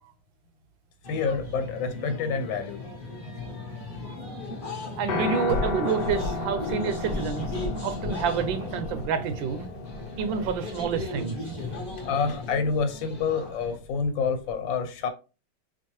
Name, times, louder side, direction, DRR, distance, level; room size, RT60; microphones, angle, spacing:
sound 1, 1.0-13.8, left 2 dB, 35° left, 1.0 m, -37 dB
voice 1, 1.1-2.8 12.0-15.1, left 5 dB, 90° left, 1.5 m, -28 dB
voice 2, 5.0-7.5 7.8-9.7 10.2-11.7, right 7 dB, 85° right, 1.3 m, -28 dB
Piano, 5.1-13.3, left 4 dB, 70° left, 1.2 m, -35 dB
sound 2, 5.4-14.5, left 1 dB, 45° right, 0.7 m, -38 dB
4.5 x 2.3 x 2.9 m
omnidirectional pair, 2.0 m